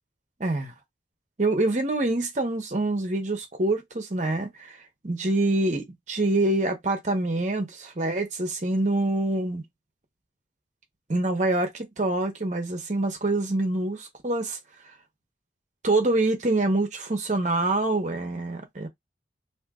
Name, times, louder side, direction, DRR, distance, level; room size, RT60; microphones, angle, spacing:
voice 1, 0.4-0.7 1.4-4.8 5.0-9.6 11.1-14.6 15.8-18.9, right 2 dB, 40° right, 0.8 m, -25 dB
2.7 x 2.5 x 3.5 m
head